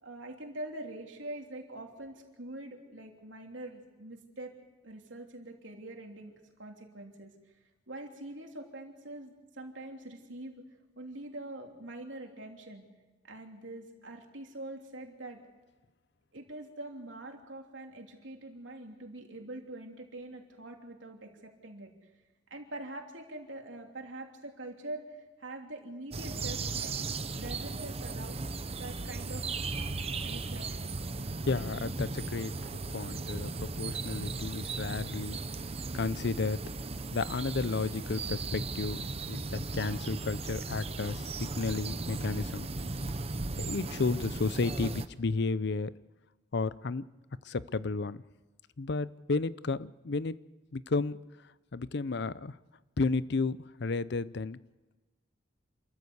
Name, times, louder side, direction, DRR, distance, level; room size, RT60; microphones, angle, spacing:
voice 1, 0.0-4.5 4.8-7.3 7.9-10.6 10.9-12.9 13.2-15.4 16.3-21.9 22.5-27.0 27.4-28.4 28.8-29.6 30.2-31.0, right 1 dB, 85° right, 2 dB, 3.2 m, -44 dB
sound 1, 26.1-45.1, right 3 dB, 35° right, 0.9 m, -37 dB
voice 2, 31.5-32.5 32.9-35.4 35.9-36.6 37.1-39.0 39.3-42.7 43.6-45.9 46.5-47.0 47.4-48.2 48.8-50.4 50.7-51.2 51.7-52.6 53.0-54.6, left 3 dB, 65° left, 17 dB, 0.6 m, -32 dB
28.0 x 14.0 x 8.1 m, 1.2 s
head